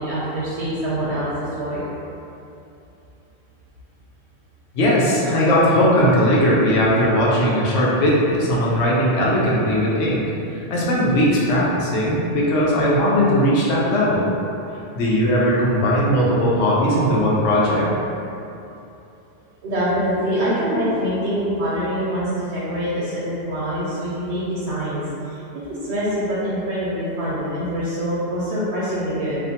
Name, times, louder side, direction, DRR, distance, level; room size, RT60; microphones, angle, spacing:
voice 1, 0.0-1.8 19.6-25.4 25.8-29.4, equal, 75° right, -9 dB, 0.8 m, -24 dB
voice 2, 4.7-10.2 10.5-14.3 14.9-17.9, equal, 85° left, -5 dB, 0.9 m, -18 dB
2.4 x 2.1 x 2.7 m, 2.8 s
omnidirectional pair, 1.1 m